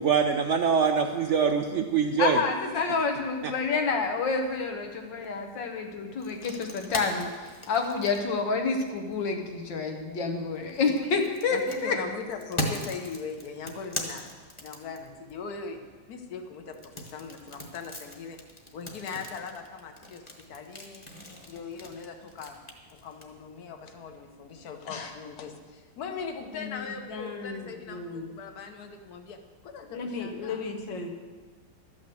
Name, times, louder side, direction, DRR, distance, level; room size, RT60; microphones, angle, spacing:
voice 1, 0.0-2.4 3.4-3.5, right 6 dB, 75° right, 6 dB, 0.6 m, -24 dB
voice 2, 2.2-12.0 24.9-25.1 26.5-28.3 29.9-31.1, left 4 dB, 85° left, 3 dB, 1.9 m, -29 dB
sound 1, 6.2-9.1 10.5-15.3 16.7-23.2, left 1 dB, 20° left, 1.2 m, -38 dB
voice 3, 11.5-14.3 14.6-15.8 16.1-18.4 18.7-20.2 20.5-21.0 21.5-22.6 22.9-30.7, left 5 dB, 60° left, 6 dB, 1.5 m, -40 dB
12.5 x 6.2 x 7.7 m, 1.4 s
omnidirectional pair, 1.9 m